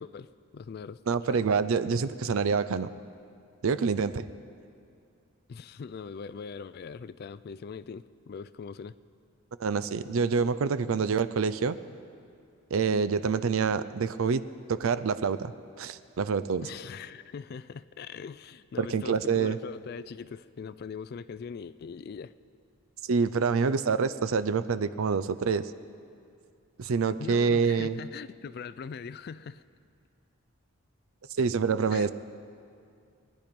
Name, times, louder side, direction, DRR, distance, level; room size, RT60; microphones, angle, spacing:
voice 1, 0.0-1.0 1.3-1.5 5.5-9.0 16.6-22.3 27.2-29.6 31.9-32.1, left 6 dB, 45° left, 15 dB, 0.3 m, -41 dB
voice 2, 1.1-2.9 3.6-4.3 9.6-11.8 12.7-14.4 14.7-15.5 15.8-16.6 18.8-19.6 23.0-25.7 26.8-28.0 31.4-32.1, right 5 dB, 75° right, 14 dB, 0.5 m, -26 dB
20.5 x 10.0 x 5.2 m, 2.4 s
head